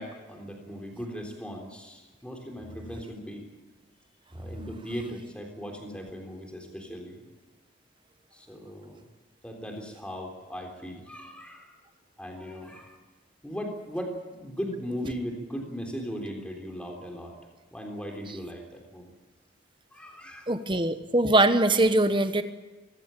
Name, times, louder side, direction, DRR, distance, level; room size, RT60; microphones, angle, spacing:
voice 1, 0.0-3.5 4.3-7.2 8.3-9.0 9.4-11.7 12.2-13.0 13.4-17.3 17.7-19.1 19.9-20.5, equal, 5° left, 2 dB, 3.6 m, -38 dB
voice 2, 20.5-22.4, right 2 dB, 25° right, 10 dB, 1.0 m, -22 dB
24.0 x 15.0 x 9.0 m, 1.2 s
head